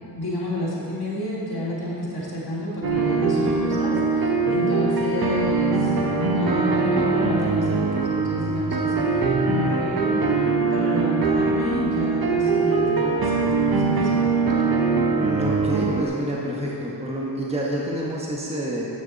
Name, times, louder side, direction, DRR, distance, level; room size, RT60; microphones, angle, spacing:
voice 1, 0.1-10.2 10.7-14.7, left 1 dB, 65° left, -7 dB, 2.3 m, -29 dB
sound 1, 2.8-16.0, right 4 dB, 60° right, 0.9 m, -22 dB
voice 2, 4.4-4.8 15.1-18.9, equal, 15° right, -4 dB, 1.2 m, -28 dB
10.0 x 8.2 x 4.1 m, 2.9 s
wide cardioid pair, 95°, 41 cm